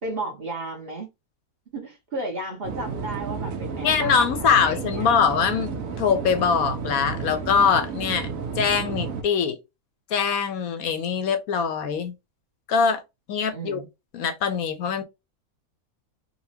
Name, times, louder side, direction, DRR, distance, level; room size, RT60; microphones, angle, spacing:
voice 1, 0.0-1.1 1.7-5.1 13.5-13.9, right 2 dB, 40° right, 1.1 m, -34 dB
sound 1, 2.6-9.2, right 5 dB, 65° right, 1.1 m, -32 dB
voice 2, 3.8-8.3 8.6-9.6 10.1-12.1 12.7-13.0 13.3-13.8 14.1-15.0, left 6 dB, 70° left, 1.1 m, -23 dB
4.1 x 2.2 x 2.8 m
omnidirectional pair, 1.7 m